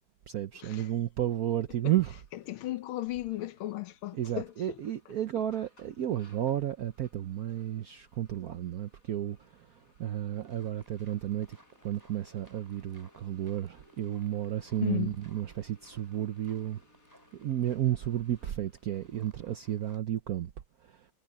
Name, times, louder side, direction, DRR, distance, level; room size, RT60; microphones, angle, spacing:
voice 1, 0.3-2.2 4.1-11.6 11.8-16.8 17.3-20.5 20.9-21.0, right 12 dB, 65° right, 0.9 m, -32 dB
sound 1, 2.1-19.8, left 1 dB, 40° left, 7.9 m, -64 dB
voice 2, 2.5-4.5 14.8-15.2, left 16 dB, 80° left, 1.6 m, -35 dB
sound 2, 10.2-20.0, right 1 dB, 10° right, 5.1 m, -63 dB
omnidirectional pair, 2.3 m